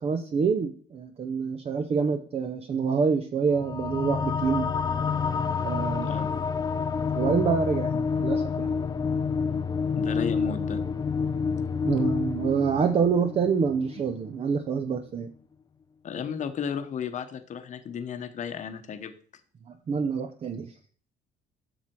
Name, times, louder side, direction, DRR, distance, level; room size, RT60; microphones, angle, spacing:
voice 1, 0.0-4.7 5.6-6.1 7.1-8.7 11.8-15.3 19.7-20.7, right 6 dB, 35° right, 7 dB, 0.7 m, -26 dB
sound 1, 3.5-14.4, left 5 dB, 25° left, 0.4 m, -28 dB
voice 2, 6.0-6.4 9.9-10.8 16.0-19.1, left 7 dB, 45° left, 8 dB, 1.0 m, -34 dB
7.8 x 6.0 x 4.4 m, 0.44 s
cardioid pair, 110°, 17 cm